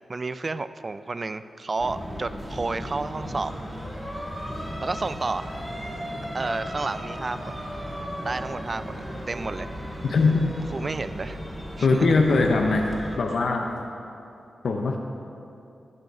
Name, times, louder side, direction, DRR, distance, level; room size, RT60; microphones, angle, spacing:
voice 1, 0.1-3.5 4.8-5.5 6.3-7.6 8.2-9.7 10.7-11.4 11.8-12.1, right 3 dB, 45° right, 13 dB, 0.3 m, -31 dB
sound 1, 1.8-13.2, equal, 15° right, 1.7 m, -35 dB
voice 2, 10.0-10.5 11.8-12.9 13.2-13.7 14.6-15.0, left 3 dB, 75° left, 2 dB, 0.5 m, -21 dB
10.5 x 5.3 x 4.8 m, 2.7 s
cardioid pair, 55°, 0 cm